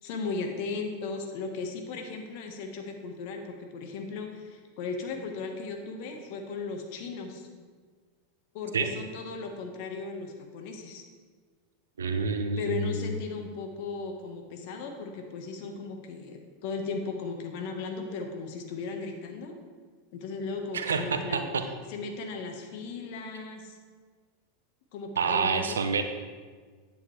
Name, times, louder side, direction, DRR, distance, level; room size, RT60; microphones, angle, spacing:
voice 1, 0.0-7.5 8.5-11.0 12.6-19.5 20.1-21.5 21.9-23.8 24.9-25.8, left 4 dB, 60° left, 4 dB, 1.4 m, -36 dB
voice 2, 12.0-12.9 20.7-21.6 25.2-26.0, right 5 dB, 85° right, 7 dB, 0.7 m, -28 dB
9.4 x 8.5 x 3.3 m, 1.5 s
hypercardioid pair, 95°, 0 cm